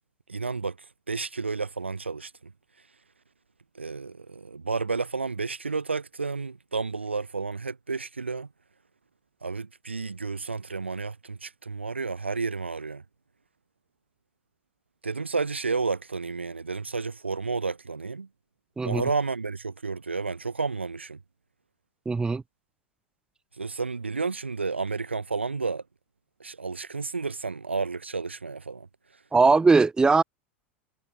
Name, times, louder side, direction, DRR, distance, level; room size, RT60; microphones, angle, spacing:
voice 1, 0.3-0.8 1.1-2.5 3.7-8.5 9.4-13.0 15.0-18.3 18.8-21.2 23.6-25.8 26.4-28.9, right 4 dB, 85° right, 2.3 m, -31 dB
voice 2, 22.0-22.4 29.3-30.2, right 4 dB, 15° right, 1.2 m, -20 dB
figure-of-eight pair, 85°, 6 cm